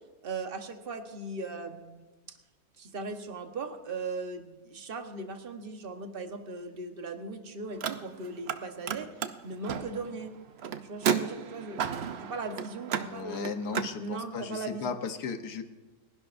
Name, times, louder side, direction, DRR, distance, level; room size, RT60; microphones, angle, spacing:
voice 1, 0.2-2.4 2.8-10.3 10.8-11.8 12.2-13.5 14.0-15.0, right 3 dB, 40° right, 5 dB, 1.4 m, -38 dB
Car, 7.7-8.6 8.8-13.9, right 7 dB, 55° right, 0.8 m, -33 dB
voice 2, 13.0-15.6, left 5 dB, 85° left, 8 dB, 1.6 m, -36 dB
30.0 x 11.5 x 2.6 m, 1.2 s
omnidirectional pair, 1.7 m